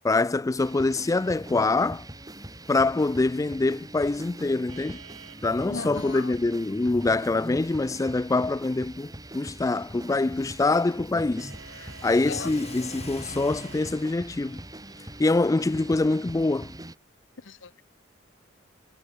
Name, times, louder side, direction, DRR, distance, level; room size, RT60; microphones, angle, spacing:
voice 1, 0.0-2.1 2.7-5.0 5.4-11.5 11.8-14.6 15.2-16.7, left 3 dB, 15° left, 0.3 m, -25 dB
sound 1, 0.6-16.9, right 1 dB, 20° right, 4.5 m, -43 dB
sound 2, 4.7-8.4 11.4-13.9, right 6 dB, 70° right, 3.1 m, -50 dB
voice 2, 5.7-6.3 12.3-12.5 17.5-17.8, left 4 dB, 70° left, 1.1 m, -37 dB
Car / Accelerating revving vroom, 9.6-15.8, left 2 dB, 35° left, 2.2 m, -45 dB
head